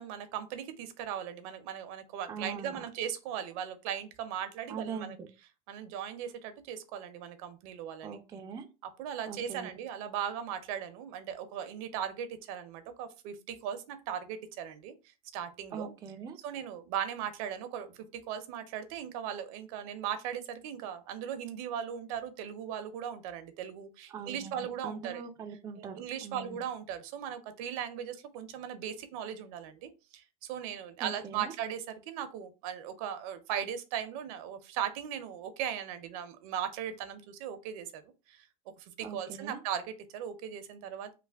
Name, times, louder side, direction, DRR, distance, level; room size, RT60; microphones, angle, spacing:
voice 1, 0.0-5.2 5.7-8.2 9.0-14.9 15.3-15.9 16.4-25.2 25.8-38.0 38.3-38.5 38.8-41.1, right 9 dB, 65° right, 10 dB, 0.6 m, -38 dB
voice 2, 2.3-2.8 4.7-5.3 8.0-8.7 9.3-9.7 15.7-16.4 24.1-26.6 31.0-31.5 39.0-39.6, right 6 dB, 20° right, 4 dB, 0.3 m, -42 dB
3.2 x 2.1 x 3.3 m, 0.30 s
supercardioid pair, 145°, 19 cm